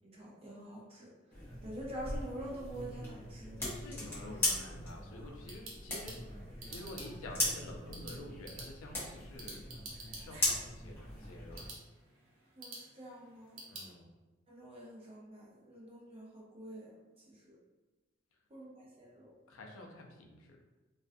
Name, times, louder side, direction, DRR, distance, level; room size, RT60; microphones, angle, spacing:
voice 1, 0.1-1.1 1.6-3.6 12.6-13.6 14.5-17.0 17.3-17.6 18.5-19.3, right 1 dB, 30° right, -4 dB, 0.6 m, -46 dB
sound 1, 1.3-11.7, left 1 dB, 10° left, 0.7 m, -39 dB
voice 2, 3.7-6.3 6.7-9.7 10.2-11.6 13.7-14.1 19.5-20.6, left 2 dB, 80° left, 1 dB, 0.4 m, -49 dB
sound 2, 5.1-13.9, right 3 dB, 75° right, 0.6 m, -51 dB
2.4 x 2.2 x 2.5 m, 1.2 s
head